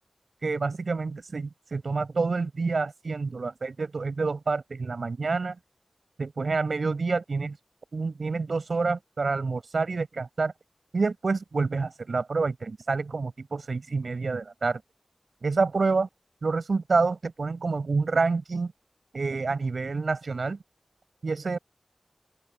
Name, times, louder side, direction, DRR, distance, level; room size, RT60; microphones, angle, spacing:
voice 1, 0.4-5.5 6.2-7.6 7.9-10.5 10.9-14.8 15.4-16.1 16.4-18.7 19.1-20.6 21.2-21.6, right 4 dB, 85° right, 6.8 m, -28 dB
open air
cardioid pair, 45°, 0 cm